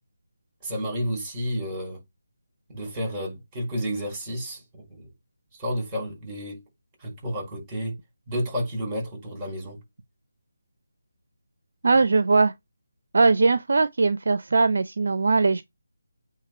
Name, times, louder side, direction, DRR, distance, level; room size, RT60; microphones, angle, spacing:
voice 1, 0.6-2.0 2.7-4.6 4.9-5.1 5.6-6.6 7.0-8.0 8.3-9.8, equal, 15° right, 5.4 m, -31 dB
voice 2, 11.8-12.5 13.1-15.6, right 3 dB, 60° right, 0.5 m, -20 dB
8.7 x 2.9 x 5.0 m
figure-of-eight pair, 155°, 0 cm